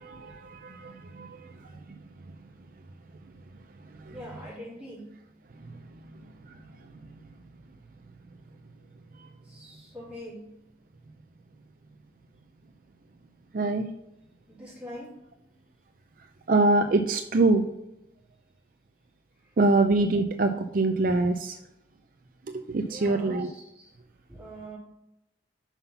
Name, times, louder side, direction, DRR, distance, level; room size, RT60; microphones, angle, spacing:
voice 1, 0.0-1.5 4.1-4.2 13.5-13.9 16.5-17.6 19.6-21.6 22.5-23.5, right 2 dB, 50° right, 6 dB, 0.5 m, -24 dB
voice 2, 4.1-5.2 9.4-10.5 14.5-15.5 19.4-19.6 22.8-23.9 24.3-24.8, equal, 5° right, -7 dB, 3.2 m, -44 dB
5.8 x 5.6 x 5.7 m, 0.86 s
head